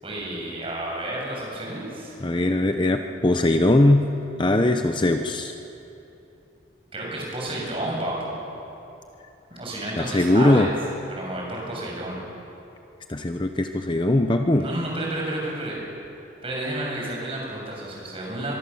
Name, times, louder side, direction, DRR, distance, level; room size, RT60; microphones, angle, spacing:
voice 1, 0.0-2.1 6.9-8.3 9.6-10.7 11.2-12.2 14.6-15.8 16.4-18.5, right 1 dB, 30° right, -3 dB, 7.1 m, -31 dB
voice 2, 2.2-4.1 4.4-5.5 10.0-10.7 13.1-14.7, left 1 dB, 25° left, 6 dB, 0.8 m, -20 dB
24.5 x 23.0 x 7.1 m, 2.9 s
head